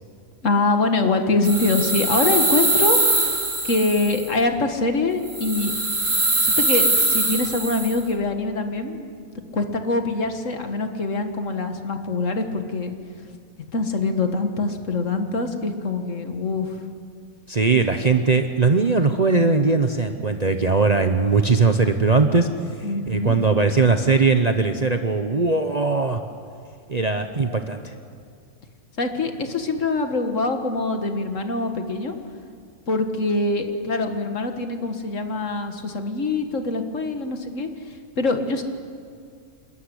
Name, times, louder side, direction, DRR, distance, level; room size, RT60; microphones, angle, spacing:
voice 1, 0.4-3.0 3.6-5.7 6.4-9.1 9.5-12.9 13.7-16.8 22.8-23.4 29.0-32.2 32.9-37.7 38.2-38.6, left 3 dB, 55° left, 6 dB, 1.9 m, -24 dB
sound 1, 1.4-4.3 5.3-8.0, right 2 dB, 70° right, 4.3 m, -22 dB
voice 2, 17.5-22.5 23.1-26.2 26.9-27.9, right 4 dB, 35° right, 6 dB, 0.9 m, -20 dB
28.0 x 13.5 x 10.0 m, 2.2 s
omnidirectional pair, 1.6 m